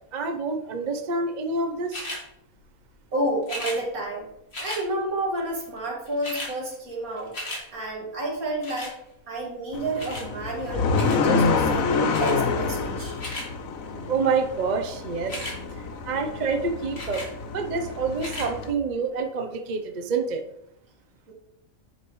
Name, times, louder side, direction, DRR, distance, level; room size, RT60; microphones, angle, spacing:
voice 1, 0.1-2.1 14.1-17.2 17.5-20.4, right 4 dB, 40° right, 4 dB, 0.7 m, -27 dB
sound 1, 1.9-2.2 3.4-3.8 4.5-4.8 5.8-5.9 6.1-6.5 6.9-7.6 8.6-8.9 10.0-10.3 10.9-11.2 12.1-12.4 13.0-13.5 15.2-15.6 17.0-17.3 18.1-18.5 19.2-19.3, left 1 dB, 45° left, 2.3 m, -35 dB
voice 2, 3.1-4.3 4.6-7.4 7.7-9.0 9.3-10.9 11.2-13.2 15.9-16.0 21.3-21.4, right 1 dB, 75° right, -1 dB, 2.5 m, -30 dB
sound 2, 9.7-18.7, left 4 dB, 70° left, 1.1 m, -27 dB
10.0 x 6.4 x 3.1 m, 0.81 s
omnidirectional pair, 1.5 m